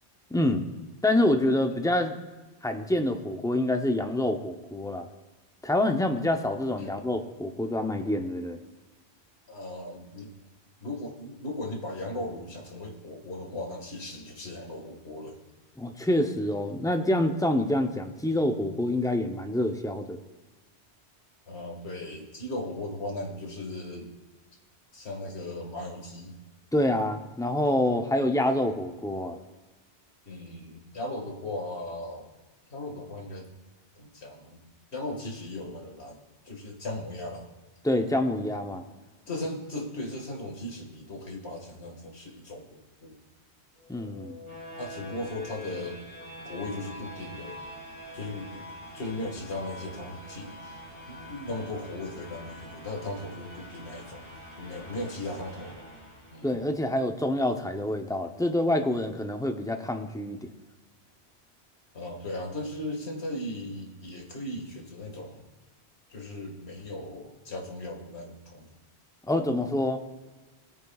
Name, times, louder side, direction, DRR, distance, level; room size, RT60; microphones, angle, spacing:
voice 1, 0.3-0.7 1.0-2.2 2.6-5.1 5.6-8.6 15.8-20.2 26.7-29.4 37.8-38.9 43.9-44.4 56.4-60.5 69.3-70.0, left 1 dB, 5° left, 5 dB, 0.5 m, -26 dB
voice 2, 9.5-10.3 10.8-15.4 21.5-24.1 24.9-26.3 30.3-32.3 32.7-33.5 34.0-34.6 34.9-36.2 36.4-37.5 39.3-43.2 44.8-46.0 46.4-47.6 48.1-48.6 48.9-50.8 51.1-54.3 54.6-55.9 56.3-56.5 61.9-65.5 66.1-68.7, left 1 dB, 75° left, 1 dB, 2.1 m, -37 dB
sound 1, 43.8-56.7, left 1 dB, 25° left, 3.3 m, -45 dB
18.0 x 9.4 x 2.4 m, 1.2 s
omnidirectional pair, 1.1 m